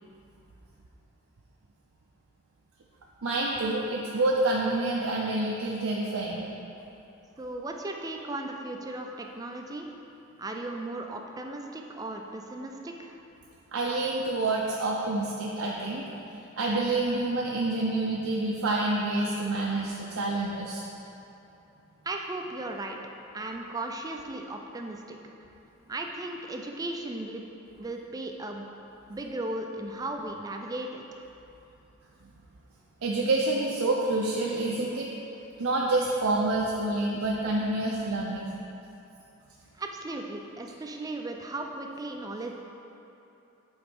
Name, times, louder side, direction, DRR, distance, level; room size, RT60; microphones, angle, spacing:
voice 1, 3.2-6.5 13.7-16.1 16.6-20.8 33.0-35.1 35.6-38.5, right 2 dB, 85° right, -3 dB, 0.6 m, -28 dB
voice 2, 7.4-9.9 10.4-13.2 22.0-23.0 23.3-25.2 25.9-27.4 27.7-28.7 29.1-31.0 39.8-42.5, right 2 dB, 15° right, 2 dB, 0.4 m, -36 dB
8.0 x 3.9 x 5.3 m, 2.9 s
head